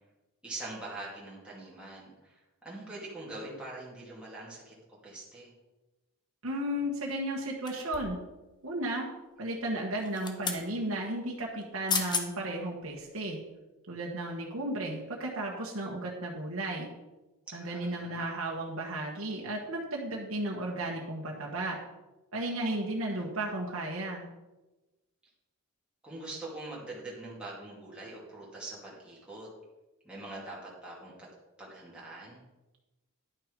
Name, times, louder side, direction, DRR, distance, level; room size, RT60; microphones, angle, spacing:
voice 1, 0.4-4.7 5.0-5.5 17.5-18.2 22.7-23.2 26.0-29.5 30.0-31.3 31.6-32.4, right 2 dB, 5° right, -7 dB, 2.5 m, -43 dB
voice 2, 6.4-8.2 8.6-9.1 9.4-13.4 13.9-16.9 17.5-21.8 22.3-24.3, right 1 dB, 70° right, -2 dB, 1.4 m, -34 dB
sound 1, 7.7-8.2 10.0-10.6 11.6-11.7 11.9-12.3 12.8-13.0, left 5 dB, 20° left, 0.9 m, -33 dB
11.0 x 6.1 x 5.2 m, 1.1 s
head